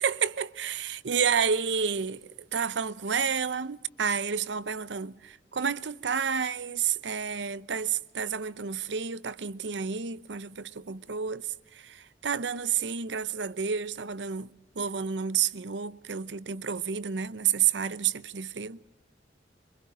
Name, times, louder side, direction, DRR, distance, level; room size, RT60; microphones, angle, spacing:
voice 1, 0.0-11.5 11.7-14.5 14.8-18.8, right 7 dB, 85° right, 0.7 m, -30 dB
25.5 x 24.0 x 5.1 m
head